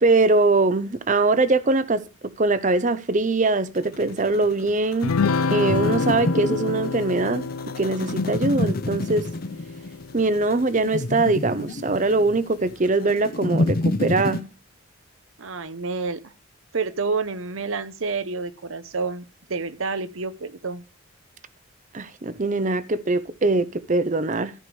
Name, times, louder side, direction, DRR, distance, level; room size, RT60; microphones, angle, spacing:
voice 1, 0.0-5.1 5.5-7.4 7.8-9.3 10.1-14.5 21.9-24.5, right 3 dB, 35° right, 0.6 m, -22 dB
sound 1, 3.8-14.4, left 2 dB, 45° left, 0.6 m, -28 dB
sound 2, 5.0-10.7, left 4 dB, 85° left, 0.6 m, -28 dB
voice 2, 15.4-16.3 16.7-19.2 19.5-20.8, right 4 dB, 65° right, 0.9 m, -29 dB
14.5 x 5.0 x 5.3 m
head